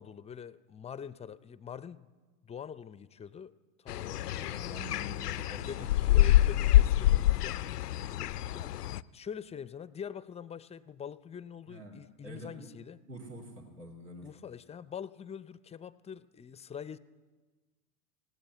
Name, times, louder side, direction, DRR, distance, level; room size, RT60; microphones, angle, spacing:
voice 1, 0.0-2.1 2.4-3.5 3.8-4.3 5.5-8.8 9.1-13.0 14.2-17.0, left 7 dB, 15° left, 0.5 m, -44 dB
sound 1, 3.9-9.0, left 14 dB, 80° left, 0.6 m, -26 dB
voice 2, 4.3-5.7 6.2-6.3 11.7-12.0 12.2-12.7 13.1-14.3, equal, 90° right, 3.2 m, -46 dB
17.5 x 17.0 x 9.6 m
hypercardioid pair, 90°, 46 cm